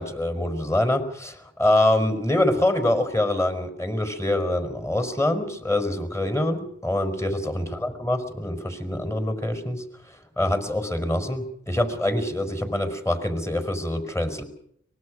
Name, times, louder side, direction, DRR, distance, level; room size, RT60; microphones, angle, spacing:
voice 1, 0.0-9.8 10.4-14.4, left 1 dB, 10° left, 8 dB, 4.9 m, -25 dB
24.0 x 21.0 x 6.4 m, 0.68 s
wide cardioid pair, 55°, 29 cm